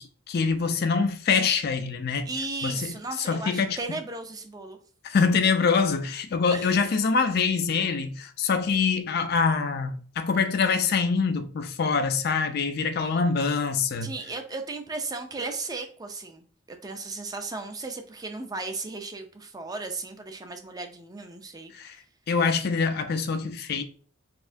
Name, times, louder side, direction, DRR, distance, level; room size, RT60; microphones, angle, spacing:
voice 1, 0.0-2.3 2.6-2.9 3.3-3.8 5.0-14.1 21.7-22.0 22.3-23.8, left 5 dB, 50° left, 0.4 m, -25 dB
voice 2, 2.3-4.8 6.5-6.8 8.0-8.1 13.1-13.2 14.0-21.7, right 3 dB, 20° right, 0.4 m, -36 dB
4.1 x 2.7 x 2.6 m
head